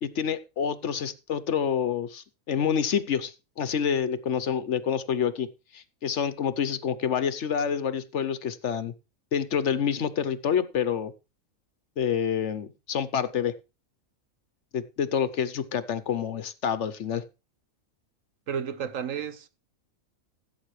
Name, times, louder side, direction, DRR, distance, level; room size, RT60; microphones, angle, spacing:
voice 1, 0.0-5.5 5.7-8.9 9.3-11.1 12.0-13.5 14.7-17.2, left 7 dB, 60° left, 1.0 m, -28 dB
voice 2, 18.5-19.5, right 7 dB, 70° right, 1.3 m, -32 dB
16.0 x 8.2 x 3.2 m
omnidirectional pair, 1.4 m